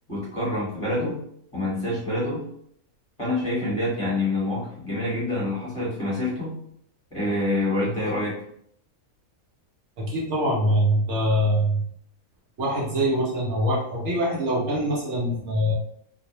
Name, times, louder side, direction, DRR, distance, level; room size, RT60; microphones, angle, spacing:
voice 1, 0.1-1.2 1.5-2.5 3.2-6.6 7.1-8.4, left 1 dB, 25° left, -8 dB, 1.1 m, -26 dB
voice 2, 10.0-11.9 12.6-15.7, equal, 65° right, -3 dB, 0.9 m, -23 dB
2.5 x 2.0 x 2.9 m, 0.68 s
omnidirectional pair, 1.4 m